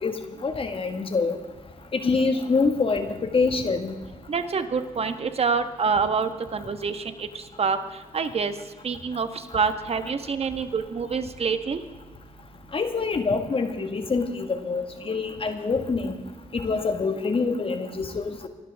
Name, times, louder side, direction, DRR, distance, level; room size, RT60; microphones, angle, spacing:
voice 1, 0.0-1.4 1.9-3.9 12.7-16.2 16.5-18.5, left 4 dB, 45° left, 7 dB, 1.8 m, -25 dB
voice 2, 4.3-7.3 7.6-7.8 8.1-8.5 8.8-9.3 9.5-11.8, right 5 dB, 50° right, 9 dB, 1.5 m, -26 dB
24.5 x 12.0 x 3.7 m, 1.3 s
cardioid pair, 65°, 13 cm